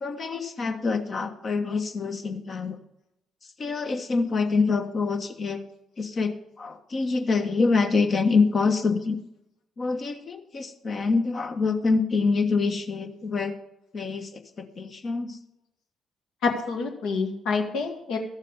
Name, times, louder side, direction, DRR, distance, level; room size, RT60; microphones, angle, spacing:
voice 1, 0.0-2.8 3.6-5.6 6.0-9.2 9.8-13.6 13.9-15.4, left 4 dB, 40° left, 5 dB, 1.3 m, -26 dB
voice 2, 16.4-18.2, left 4 dB, 60° left, 2 dB, 1.8 m, -27 dB
13.5 x 7.3 x 5.4 m, 0.85 s
figure-of-eight pair, 45°, 0 cm